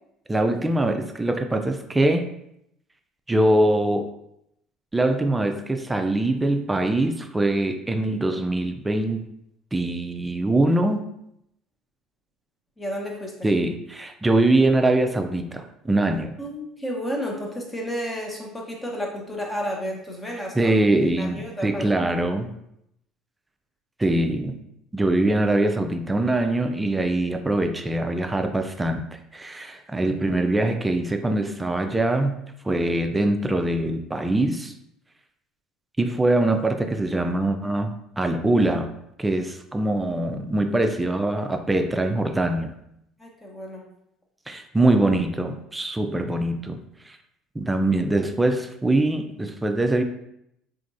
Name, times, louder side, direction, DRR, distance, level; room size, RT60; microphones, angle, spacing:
voice 1, 0.3-2.3 3.3-4.1 4.9-9.2 9.7-11.1 13.4-16.3 20.5-22.5 24.0-24.6 24.9-32.4 32.6-34.7 36.0-38.9 39.2-42.7 44.5-47.2 47.6-50.0, right 2 dB, 15° right, 7 dB, 0.3 m, -23 dB
voice 2, 12.8-13.3 16.4-20.7 21.2-22.0 43.2-43.8, equal, 20° left, -1 dB, 1.0 m, -31 dB
3.4 x 2.9 x 2.6 m, 0.77 s
hypercardioid pair, 75°, 0 cm